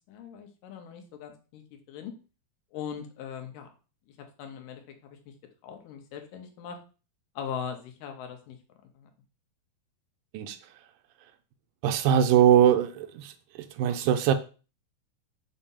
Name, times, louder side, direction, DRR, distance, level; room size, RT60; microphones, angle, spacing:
voice 1, 0.1-2.1 2.7-3.7 4.1-5.3 5.6-6.8 7.4-8.6 9.0-9.1, left 8 dB, 85° left, 2.6 m, -40 dB
voice 2, 11.8-13.3 13.8-14.3, right 9 dB, 80° right, 2.0 m, -21 dB
6.9 x 2.7 x 5.5 m
omnidirectional pair, 3.8 m